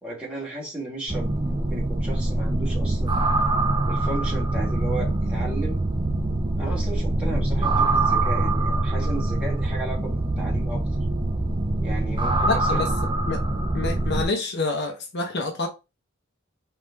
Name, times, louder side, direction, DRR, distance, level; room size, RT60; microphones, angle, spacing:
voice 1, 0.0-3.2 3.9-5.8 6.6-10.8 11.8-12.9, right 2 dB, 5° right, 2.4 m, -35 dB
sound 1, 1.1-14.2, right 2 dB, 25° right, 0.5 m, -24 dB
voice 2, 12.5-12.9 13.3-13.4 13.7-15.7, left 3 dB, 55° left, 0.8 m, -27 dB
4.9 x 3.3 x 3.0 m
head